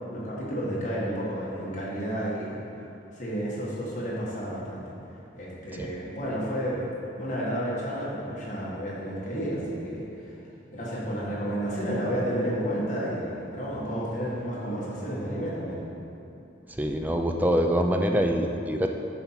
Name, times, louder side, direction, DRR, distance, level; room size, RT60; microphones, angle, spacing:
voice 1, 0.1-2.6 3.1-4.8 5.4-6.8 7.2-10.3 10.7-15.8, equal, 40° left, -6 dB, 1.6 m, -31 dB
voice 2, 16.8-18.9, equal, 10° right, 3 dB, 0.3 m, -24 dB
9.1 x 4.3 x 5.8 m, 2.8 s
head